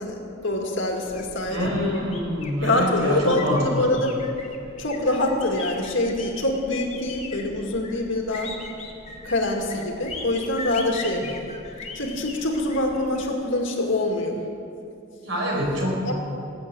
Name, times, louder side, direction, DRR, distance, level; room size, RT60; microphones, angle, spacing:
voice 1, 0.0-1.7 2.6-4.1 4.8-8.5 9.2-11.3 11.9-14.4 16.0-16.1, left 2 dB, 65° left, 1 dB, 2.1 m, -25 dB
sound 1, 1.0-13.3, left 3 dB, 35° left, 1.5 m, -40 dB
voice 2, 1.5-3.9 15.2-16.1, equal, 70° right, -2 dB, 4.6 m, -26 dB
18.5 x 8.5 x 7.7 m, 2.6 s
head